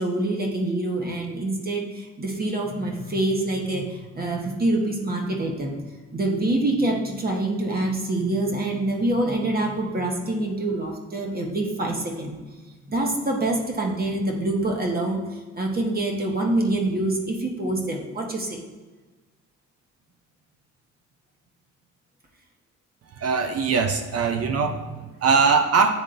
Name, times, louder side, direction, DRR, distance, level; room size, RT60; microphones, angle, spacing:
voice 1, 0.0-5.8 6.1-12.4 12.9-18.6, right 2 dB, 30° right, 0 dB, 1.3 m, -26 dB
voice 2, 23.1-25.9, right 5 dB, 55° right, 6 dB, 0.6 m, -21 dB
10.0 x 3.6 x 2.6 m, 1.3 s
cardioid pair, 90°, 30 cm